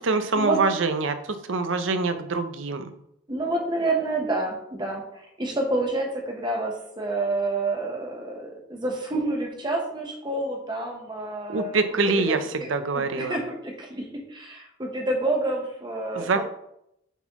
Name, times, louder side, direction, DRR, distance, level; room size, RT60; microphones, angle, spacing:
voice 1, 0.0-2.9 11.5-13.4 16.2-16.5, right 3 dB, 75° right, 9 dB, 0.6 m, -25 dB
voice 2, 3.3-5.0 5.4-11.8 12.3-12.7 12.9-16.4, right 2 dB, 25° right, 1 dB, 1.0 m, -28 dB
8.0 x 4.1 x 3.0 m, 0.77 s
head